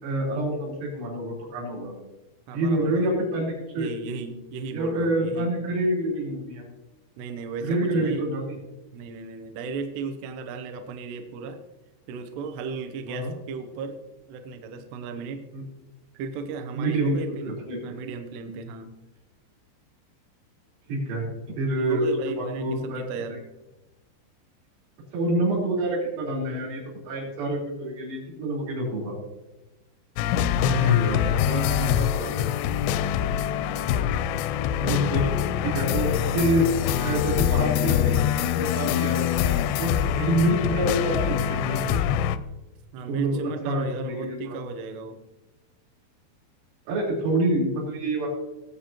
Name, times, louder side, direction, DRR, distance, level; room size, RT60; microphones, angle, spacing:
voice 1, 0.0-1.9 2.5-3.9 4.7-6.7 7.6-8.6 13.1-13.3 15.5-15.6 16.7-17.8 20.9-22.1 22.4-23.0 23.3-23.4 25.1-29.2 30.6-31.2 34.8-35.5 35.7-36.7 37.0-39.9 40.2-42.0 43.1-43.4 43.6-44.6 46.9-48.3, right 1 dB, 90° right, -5 dB, 6.5 m, -27 dB
voice 2, 2.5-3.3 3.7-5.5 7.2-8.2 8.9-11.6 12.1-14.0 14.3-15.4 16.1-17.5 17.8-18.9 21.8-23.4 30.4-32.9 42.9-45.2, right 4 dB, 75° right, 6 dB, 2.7 m, -35 dB
sound 1, 30.2-42.4, left 10 dB, 85° left, 2.5 m, -24 dB
20.0 x 8.0 x 2.9 m, 1.0 s
omnidirectional pair, 5.3 m